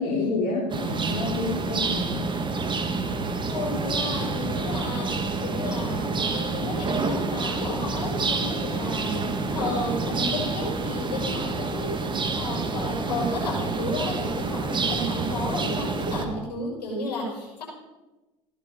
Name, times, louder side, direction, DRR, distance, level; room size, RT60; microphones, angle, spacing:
voice 1, 0.0-2.2, left 3 dB, 60° left, -4 dB, 4.6 m, -28 dB
sound 1, 0.7-16.3, right 3 dB, 20° right, 2.0 m, -28 dB
voice 2, 3.4-5.1 5.4-17.6, left 2 dB, 80° left, -3 dB, 6.4 m, -32 dB
16.0 x 11.0 x 5.2 m, 1.1 s
hypercardioid pair, 80°, 21 cm